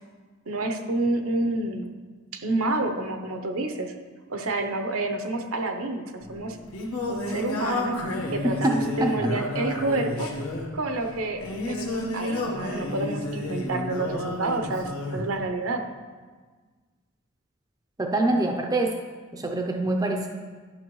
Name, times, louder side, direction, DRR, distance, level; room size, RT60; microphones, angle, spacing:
voice 1, 0.5-1.9 2.3-3.9 4.3-6.6 7.1-8.0 8.3-10.3 10.7-11.4 11.7-15.8, right 2 dB, 75° right, 6 dB, 0.7 m, -29 dB
Singing, 6.2-15.3, left 1 dB, 85° left, 1.2 m, -31 dB
voice 2, 18.0-18.9 19.3-20.3, right 2 dB, 15° right, 2 dB, 0.4 m, -25 dB
11.5 x 6.0 x 3.1 m, 1.4 s
head